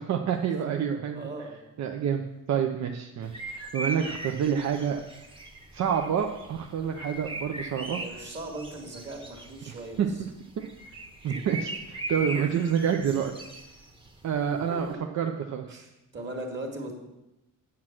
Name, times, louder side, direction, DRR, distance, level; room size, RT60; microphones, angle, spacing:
voice 1, 0.0-1.2 1.8-2.2 2.5-5.0 5.7-8.2 9.7-10.1 11.2-13.3 14.2-15.8, right 8 dB, 60° right, 4 dB, 0.7 m, -28 dB
voice 2, 1.1-1.8 7.9-10.2 11.3-11.4 15.7-17.0, right 2 dB, 35° right, 1 dB, 2.1 m, -39 dB
sound 1, 3.2-14.9, right 1 dB, 15° right, 1.1 m, -40 dB
8.7 x 7.4 x 6.0 m, 0.94 s
cardioid pair, 150°, 32 cm